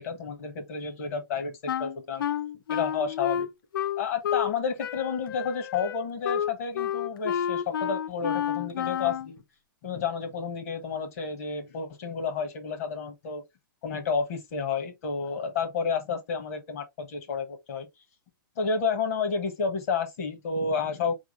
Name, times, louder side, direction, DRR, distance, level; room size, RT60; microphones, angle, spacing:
voice 1, 0.0-1.5 1.8-2.2 2.7-3.5 4.0-9.4 9.8-13.4 13.8-17.9 18.6-21.1, left 5 dB, 45° left, 1.4 m, -30 dB
Wind instrument woodwind instrument, 1.7-4.5 4.8-9.3, left 9 dB, 80° left, 0.5 m, -30 dB
4.6 x 3.6 x 3.2 m
hypercardioid pair, 170°, 12 cm